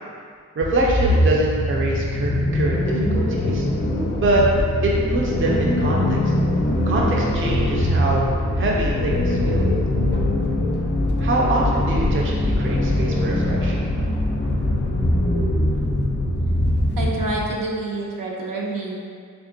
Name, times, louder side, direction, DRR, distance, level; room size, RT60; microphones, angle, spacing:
sound 1, 0.6-17.5, left 1 dB, 35° left, 0.4 m, -22 dB
voice 1, 0.6-3.7 4.1-4.4 4.8-6.3 6.9-8.3 8.6-9.6 11.2-13.8, right 2 dB, 40° right, -3 dB, 0.4 m, -24 dB
voice 2, 17.0-19.0, right 2 dB, 85° right, -3 dB, 0.7 m, -27 dB
3.5 x 3.5 x 2.6 m, 2.1 s
wide cardioid pair, 175°, 32 cm